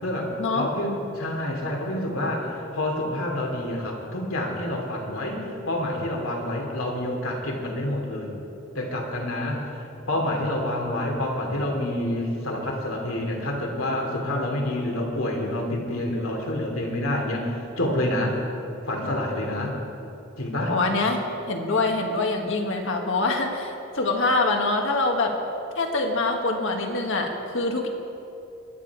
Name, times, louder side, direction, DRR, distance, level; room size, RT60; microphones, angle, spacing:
voice 1, 0.0-8.3 8.7-18.4 18.9-19.7 20.4-20.7, left 1 dB, 85° left, 0 dB, 2.9 m, -28 dB
voice 2, 20.7-25.4 25.8-27.9, left 2 dB, 65° left, 2 dB, 1.7 m, -25 dB
22.5 x 9.4 x 4.9 m, 2.8 s
head